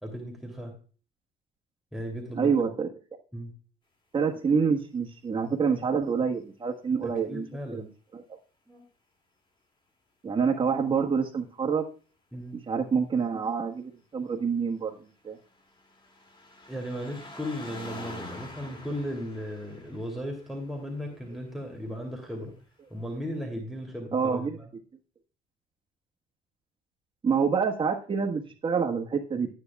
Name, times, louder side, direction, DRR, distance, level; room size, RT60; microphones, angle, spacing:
voice 1, 0.0-0.7 1.9-2.6 3.3-3.5 6.9-7.8 8.7-8.8 12.3-12.6 16.7-22.5 22.9-24.7, equal, ahead, 2 dB, 2.8 m, -36 dB
voice 2, 2.3-2.9 4.1-7.4 7.7-7.9 8.1-8.2 10.2-11.8 12.7-14.9 15.2-15.4 24.1-24.6 27.2-29.5, right 6 dB, 30° right, 2 dB, 1.4 m, -27 dB
sound 1, 15.0-21.6 22.6-22.7, left 2 dB, 30° left, 2.5 m, -46 dB
13.0 x 9.7 x 2.3 m, 0.37 s
cardioid pair, 110°, 17 cm